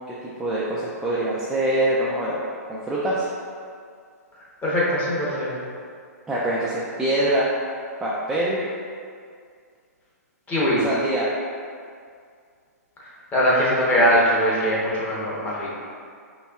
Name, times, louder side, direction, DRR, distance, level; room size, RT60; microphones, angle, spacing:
voice 1, 0.1-2.4 2.7-3.3 6.3-7.5 8.0-8.6 10.8-11.3, right 1 dB, 5° right, -7 dB, 0.3 m, -24 dB
voice 2, 4.6-5.5 10.5-10.8 13.3-15.7, equal, 15° left, -7 dB, 0.9 m, -21 dB
4.2 x 3.0 x 2.3 m, 2.2 s
hypercardioid pair, 140°, 9 cm